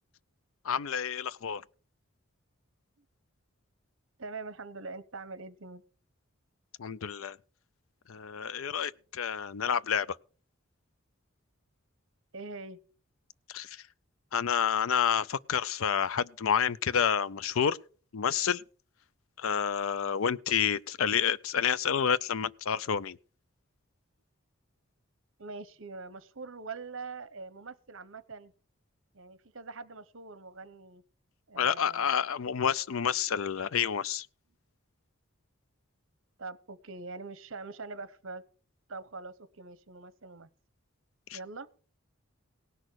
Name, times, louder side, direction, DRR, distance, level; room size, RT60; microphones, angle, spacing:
voice 1, 0.6-1.6 6.8-7.4 8.1-10.1 13.5-13.8 14.3-17.8 18.1-18.6 19.4-23.2 31.6-34.3 41.3-41.4, left 7 dB, 75° left, 0.5 m, -29 dB
voice 2, 4.2-5.8 12.3-12.8 25.4-28.5 29.1-31.0 31.5-32.2 36.4-38.4 38.9-40.5 41.3-41.7, right 4 dB, 65° right, 1.0 m, -43 dB
17.5 x 6.2 x 6.3 m
head